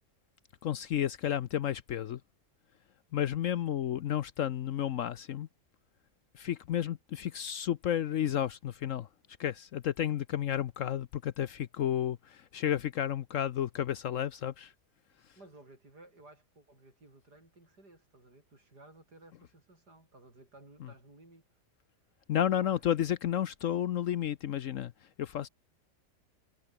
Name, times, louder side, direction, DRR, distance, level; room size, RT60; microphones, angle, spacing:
voice 1, 0.6-2.2 3.1-5.5 6.3-9.1 9.4-14.7 15.3-15.4 20.8-20.9 22.3-25.5, left 10 dB, 65° left, 0.9 m, -32 dB
voice 2, 15.4-21.4 22.5-22.9, right 2 dB, 80° right, 8.1 m, -56 dB
omnidirectional pair, 1.7 m